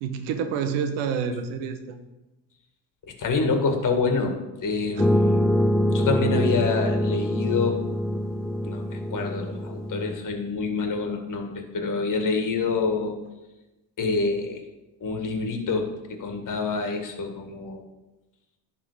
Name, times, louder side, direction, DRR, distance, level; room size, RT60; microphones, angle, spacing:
voice 1, 0.0-2.0 5.0-5.1, right 6 dB, 85° right, 8 dB, 1.0 m, -28 dB
voice 2, 3.2-4.4 4.6-5.4 5.9-7.8 8.6-13.2 14.0-14.6 15.0-17.8, left 4 dB, 45° left, 4 dB, 1.8 m, -27 dB
sound 1, 5.0-10.2, equal, ahead, 0.4 m, -24 dB
11.5 x 3.8 x 5.0 m, 1.0 s
supercardioid pair, 75°, 43 cm